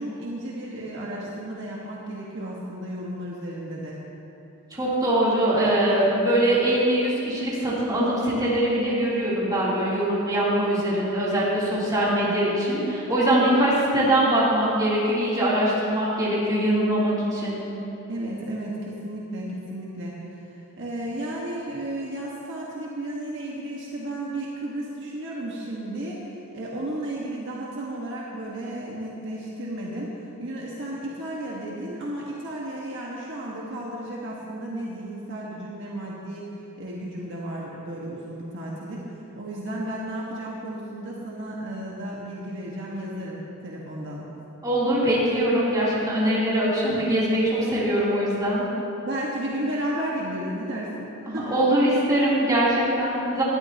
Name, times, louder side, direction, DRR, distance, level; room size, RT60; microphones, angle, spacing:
voice 1, 0.0-4.0 18.1-20.1 20.8-26.2 26.5-30.1 30.4-36.5 36.8-44.2 49.0-51.1 51.3-51.6, right 1 dB, 55° right, -5 dB, 1.7 m, -33 dB
voice 2, 4.7-17.6 44.6-48.6 51.3-53.4, right 1 dB, 20° right, -9 dB, 3.5 m, -22 dB
19.5 x 12.5 x 3.0 m, 2.9 s
head